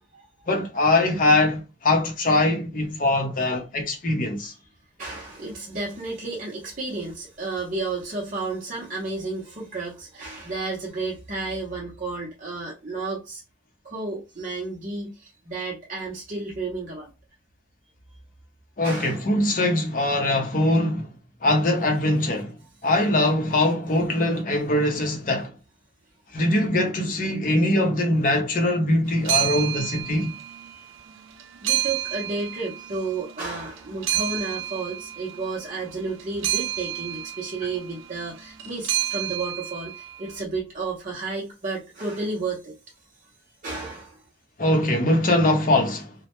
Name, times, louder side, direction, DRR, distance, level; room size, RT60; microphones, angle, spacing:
voice 1, 0.5-4.5 18.8-21.1 21.4-22.5 22.8-25.5 26.3-30.3 44.6-46.1, left 1 dB, 45° left, 0.6 m, -22 dB
voice 2, 5.0-13.4 13.8-17.1 18.8-19.2 30.7-30.8 31.6-42.7 43.6-44.2, right 3 dB, 45° right, 0.6 m, -32 dB
sound 1, 29.1-30.8 31.1-33.4 33.8-40.3, right 13 dB, 90° right, 0.4 m, -30 dB
2.0 x 2.0 x 2.9 m
head